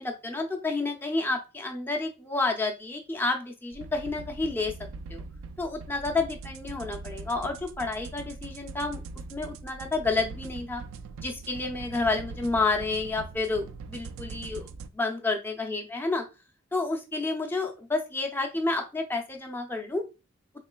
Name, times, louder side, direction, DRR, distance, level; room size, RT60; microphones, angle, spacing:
voice 1, 0.0-4.7 5.1-5.2 5.6-9.0 9.3-10.8 11.2-14.7 14.9-16.2 16.7-20.0, left 3 dB, 10° left, 3 dB, 0.4 m, -30 dB
sound 1, 3.7-14.9, right 4 dB, 80° right, 0.3 m, -42 dB
3.7 x 3.1 x 2.2 m, 0.29 s
head